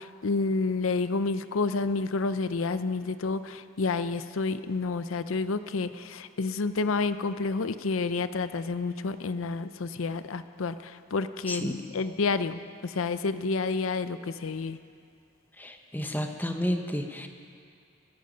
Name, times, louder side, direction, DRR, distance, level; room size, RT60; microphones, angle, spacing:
voice 1, 0.0-14.8, left 4 dB, 75° left, 12 dB, 0.6 m, -29 dB
voice 2, 15.6-17.3, equal, 10° left, 5 dB, 1.0 m, -31 dB
22.5 x 11.0 x 5.2 m, 2.3 s
head